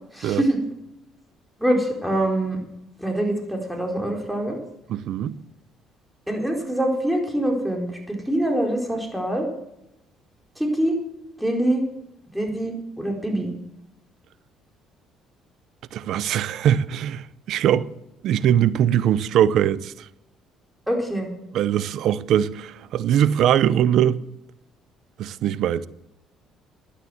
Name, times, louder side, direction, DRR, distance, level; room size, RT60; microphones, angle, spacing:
voice 1, 0.1-0.6 1.6-2.6 3.0-4.6 6.3-9.4 10.6-11.0 11.4-11.8 12.3-13.5 20.9-21.3, right 1 dB, 5° right, 4.3 m, -24 dB
voice 2, 4.9-5.4 15.9-17.9 18.2-20.1 21.5-24.2 25.2-25.9, right 10 dB, 70° right, 0.6 m, -21 dB
11.5 x 10.0 x 7.9 m
supercardioid pair, 75°, 0 cm